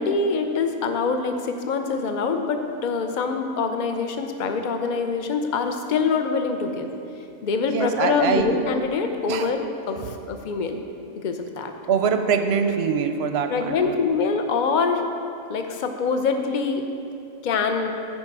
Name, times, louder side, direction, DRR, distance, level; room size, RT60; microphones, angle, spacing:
voice 1, 0.0-6.9 7.4-10.8 11.2-11.7 13.5-15.0 15.5-16.8 17.4-17.9, left 4 dB, 45° left, 5 dB, 0.7 m, -24 dB
voice 2, 7.7-8.6 9.3-9.5 10.0-10.1 11.9-14.0, right 6 dB, 60° right, 7 dB, 0.8 m, -23 dB
14.5 x 5.1 x 4.7 m, 2.6 s
omnidirectional pair, 1.4 m